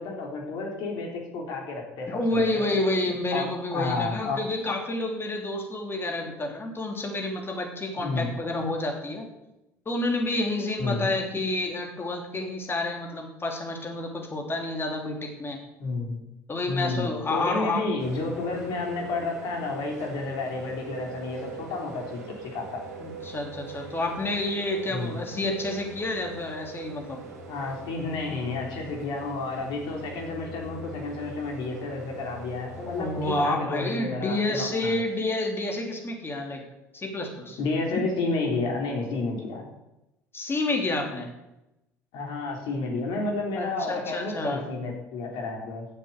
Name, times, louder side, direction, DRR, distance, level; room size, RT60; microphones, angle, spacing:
voice 1, 0.0-2.4 3.3-4.4 8.0-8.3 10.8-11.1 15.8-16.2 16.7-22.8 24.9-25.1 27.5-35.0 37.6-39.7 42.1-45.9, left 3 dB, 65° left, 0 dB, 3.7 m, -31 dB
voice 2, 2.1-9.3 9.8-15.6 16.5-17.9 23.0-27.2 32.9-36.6 36.9-37.6 40.3-41.3 43.5-44.7, left 2 dB, 25° left, 2 dB, 3.1 m, -29 dB
sound 1, 18.0-33.5, right 3 dB, 85° right, 1.9 m, -42 dB
10.0 x 7.6 x 8.1 m, 0.93 s
hypercardioid pair, 65°, 9 cm